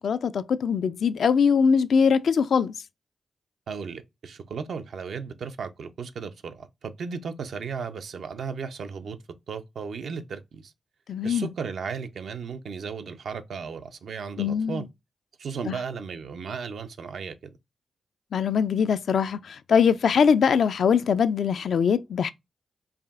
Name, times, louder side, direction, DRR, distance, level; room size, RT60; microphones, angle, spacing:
voice 1, 0.0-2.7 11.1-11.5 14.4-14.9 15.7-15.8 18.3-22.3, left 6 dB, 75° left, 0.3 m, -22 dB
voice 2, 3.7-9.2 9.5-10.7 11.2-14.9 15.4-17.5, right 5 dB, 75° right, 0.5 m, -35 dB
4.8 x 2.7 x 2.4 m
cardioid pair, 55°, 0 cm